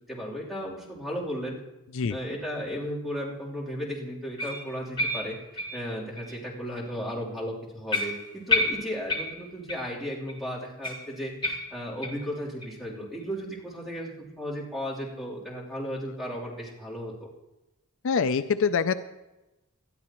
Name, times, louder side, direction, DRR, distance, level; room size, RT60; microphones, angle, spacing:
voice 1, 0.1-1.5 2.1-5.3 5.7-14.1 14.4-17.1, equal, ahead, -7 dB, 3.4 m, -35 dB
sound 1, 4.4-6.4 6.8-6.9 7.3-7.4 7.9-10.0 10.3-10.4 10.8-12.3 12.6-12.7 13.2-13.3 13.8-13.9, left 2 dB, 20° left, 2.0 m, -31 dB
voice 2, 18.0-18.9, left 6 dB, 60° left, 11 dB, 0.4 m, -24 dB
19.5 x 12.5 x 3.0 m, 1.0 s
head